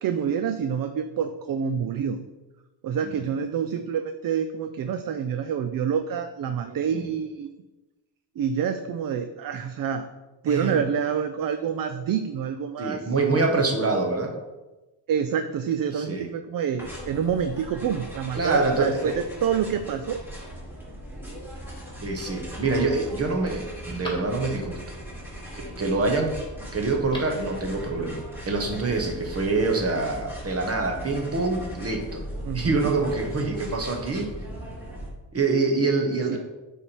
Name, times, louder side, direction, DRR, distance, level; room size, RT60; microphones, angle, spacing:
voice 1, 0.0-2.2 2.8-7.5 8.4-10.1 10.4-13.1 15.1-19.1 19.4-20.2 32.4-32.9 36.3-36.4, right 7 dB, 50° right, 8 dB, 0.5 m, -27 dB
voice 2, 6.6-7.0 10.5-10.8 12.8-14.3 15.9-16.3 18.3-19.2 22.0-24.9 25.5-26.4 26.7-32.2 32.5-34.3 35.3-36.4, right 3 dB, 30° right, 3 dB, 1.2 m, -25 dB
sound 1, 16.8-35.1, equal, 5° right, 2.2 m, -38 dB
Telephone, 23.3-24.8 26.8-27.5 27.8-27.9, left 1 dB, 10° left, 1.7 m, -42 dB
8.3 x 3.5 x 4.4 m, 1.1 s
cardioid pair, 110°, 45 cm